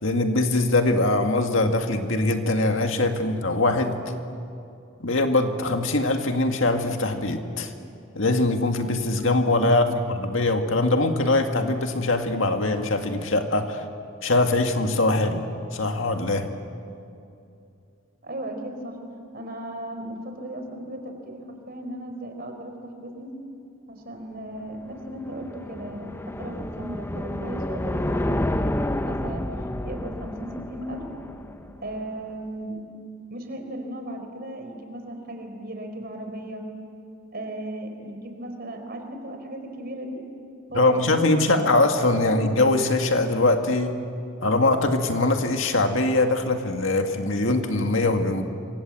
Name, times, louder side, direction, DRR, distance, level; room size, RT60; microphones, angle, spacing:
voice 1, 0.0-4.1 5.0-7.7 8.2-13.8 14.2-15.4 15.7-16.5 40.7-43.9 44.4-48.4, left 2 dB, 65° left, 5 dB, 2.1 m, -22 dB
voice 2, 18.2-19.0 19.3-23.3 23.9-28.8 29.0-29.5 29.8-31.0 31.8-32.8 33.3-36.6 37.3-40.2 40.7-41.2 41.4-41.6, right 1 dB, 45° right, 5 dB, 4.3 m, -36 dB
sound 1, 24.6-32.0, left 1 dB, 10° left, 0.7 m, -30 dB
27.5 x 25.0 x 7.8 m, 2.6 s
head